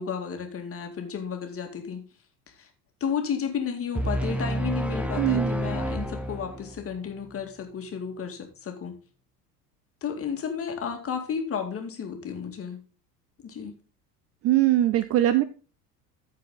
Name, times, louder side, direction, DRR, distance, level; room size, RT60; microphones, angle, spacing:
voice 1, 0.0-2.0 2.5-2.7 3.0-8.9 10.0-12.8 13.4-13.8, left 7 dB, 30° left, 4 dB, 2.2 m, -32 dB
sound 1, 3.9-6.9, right 1 dB, 5° right, 1.2 m, -29 dB
voice 2, 5.2-5.5 14.4-15.4, right 13 dB, 30° right, 14 dB, 0.5 m, -21 dB
14.5 x 4.8 x 3.9 m, 0.37 s
figure-of-eight pair, 75°, 48 cm